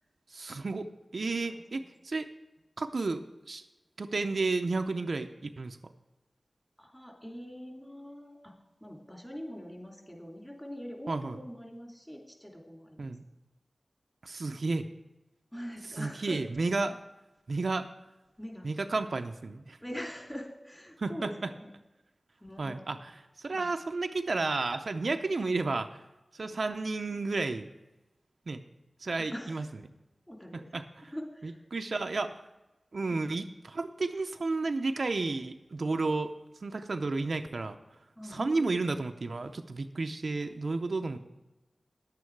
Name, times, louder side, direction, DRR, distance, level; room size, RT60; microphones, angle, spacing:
voice 1, 0.3-0.9 1.1-2.3 2.8-3.6 4.0-5.8 11.1-11.4 13.0-13.2 14.2-14.9 16.0-17.0 17.5-17.9 18.6-19.8 21.0-21.5 22.6-23.1 23.4-26.0 26.3-27.7 28.5-28.6 29.0-29.6 30.7-30.8 31.4-32.4 32.9-36.3 36.6-37.8 38.3-41.2, right 3 dB, 70° right, 7 dB, 0.6 m, -32 dB
voice 2, 1.5-1.8 6.8-8.5 8.8-13.1 15.5-16.4 18.4-18.7 19.8-21.7 22.4-23.0 23.5-23.7 29.2-29.7 30.3-30.7 31.1-31.6 38.2-38.7, equal, 15° left, 0 dB, 2.9 m, -43 dB
10.5 x 8.6 x 4.6 m, 1.0 s
cardioid pair, 40°, 0 cm